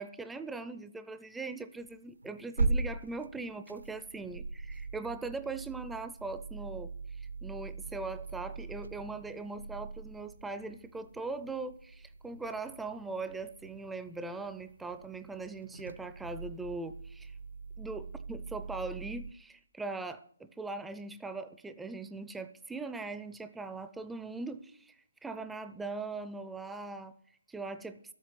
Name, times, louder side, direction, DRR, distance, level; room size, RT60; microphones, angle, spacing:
voice 1, 0.0-17.4 17.8-25.0 25.2-27.1 27.5-28.0, right 3 dB, 5° right, 10 dB, 0.5 m, -40 dB
sound 1, 1.8-19.3, right 3 dB, 80° right, 1.1 m, -40 dB
12.5 x 8.1 x 7.6 m, 0.64 s
figure-of-eight pair, 145°, 0 cm